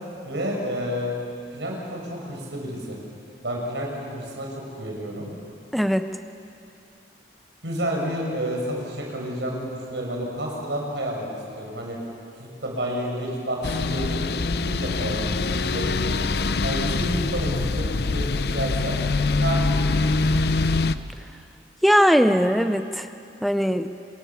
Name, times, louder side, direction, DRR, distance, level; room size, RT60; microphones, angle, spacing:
voice 1, 0.2-1.1 1.5-3.0 3.4-5.3 7.6-11.3 11.6-12.0 12.4-16.3 16.6-19.0 19.3-20.2, equal, 75° right, -1 dB, 6.0 m, -30 dB
voice 2, 5.7-6.1 21.8-23.1 23.4-23.9, equal, ahead, 9 dB, 0.5 m, -19 dB
sound 1, 13.6-20.9, left 3 dB, 60° left, 0.6 m, -24 dB
27.5 x 20.0 x 7.2 m, 2.6 s
head